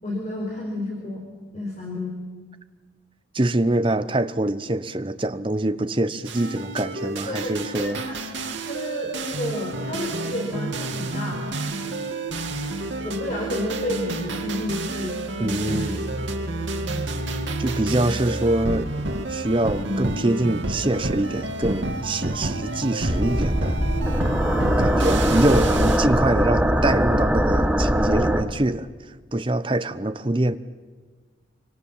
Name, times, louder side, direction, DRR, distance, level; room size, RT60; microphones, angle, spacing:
voice 1, 0.0-1.3 1.5-2.2 7.0-8.2 8.6-11.6 13.0-16.0 16.8-17.1 19.8-20.1, left 1 dB, 35° left, 4.6 m, -31 dB
voice 2, 3.3-8.0 15.4-16.0 17.6-18.9 19.3-23.8 24.8-28.9 29.3-30.6, right 1 dB, 25° right, 0.8 m, -24 dB
sound 1, 6.3-26.0, right 2 dB, 85° right, 2.3 m, -30 dB
sound 2, 23.1-28.4, equal, 5° right, 1.2 m, -21 dB
26.5 x 25.0 x 7.3 m
head